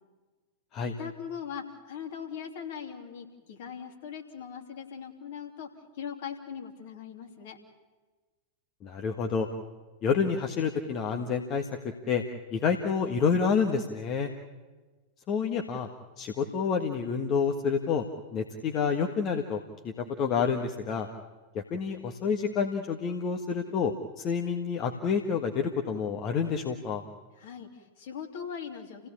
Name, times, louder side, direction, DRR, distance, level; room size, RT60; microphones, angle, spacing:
voice 1, 1.0-5.7 6.0-7.6 27.4-29.1, left 7 dB, 55° left, 3 dB, 3.0 m, -40 dB
voice 2, 8.8-9.5 10.0-11.7 12.1-12.2 12.5-14.3 15.3-15.9 16.2-18.0 18.3-19.6 19.8-21.1 21.5-27.0, left 6 dB, 35° left, 4 dB, 1.6 m, -28 dB
29.0 x 16.5 x 8.6 m, 1.3 s
figure-of-eight pair, 90°, 0 cm